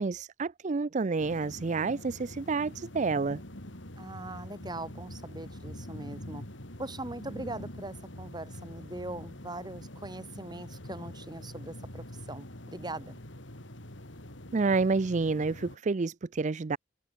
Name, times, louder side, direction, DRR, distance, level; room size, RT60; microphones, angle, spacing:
voice 1, 0.0-3.4 14.5-16.8, right 4 dB, 40° right, 0.5 m, -29 dB
sound 1, 1.2-15.8, left 1 dB, 75° left, 4.8 m, -45 dB
voice 2, 4.0-6.4 6.8-13.2, right 2 dB, 20° right, 7.6 m, -41 dB
open air
head